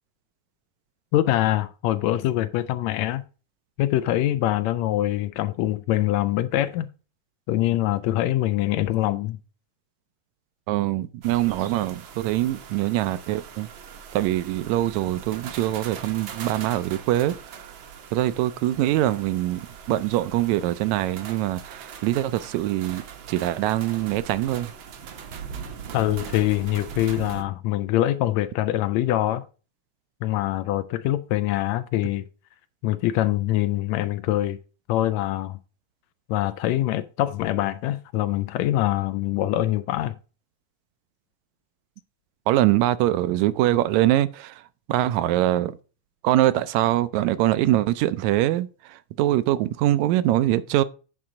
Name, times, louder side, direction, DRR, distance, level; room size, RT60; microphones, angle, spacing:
voice 1, 1.1-3.2 3.8-6.9 7.5-9.4 25.9-29.4 30.2-32.3 32.8-34.6 34.9-35.6 36.3-40.2, left 14 dB, 80° left, 1.7 m, -24 dB
voice 2, 10.7-13.7 14.1-17.7 18.1-24.7 42.5-45.8 46.2-50.8, right 14 dB, 80° right, 1.8 m, -23 dB
sound 1, 11.2-27.4, right 7 dB, 65° right, 1.2 m, -41 dB
8.9 x 3.8 x 6.1 m
omnidirectional pair, 3.3 m